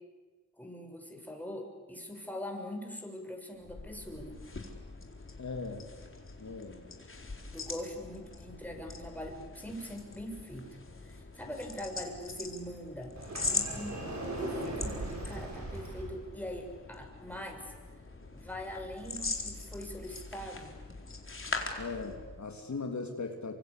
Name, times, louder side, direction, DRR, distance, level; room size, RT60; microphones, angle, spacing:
voice 1, 0.6-4.4 7.5-13.2 13.5-14.1 14.4-17.7 18.3-20.8, equal, 5° left, 2 dB, 6.6 m, -42 dB
sound 1, 3.6-22.5, left 3 dB, 40° left, 4.3 m, -42 dB
voice 2, 5.4-5.8 6.4-6.8 21.8-23.6, left 4 dB, 60° left, 3 dB, 3.2 m, -38 dB
Sliding door, 13.2-16.2, right 2 dB, 55° right, 7.3 m, -38 dB
27.5 x 25.5 x 8.5 m, 1.3 s
wide cardioid pair, 75°, 33 cm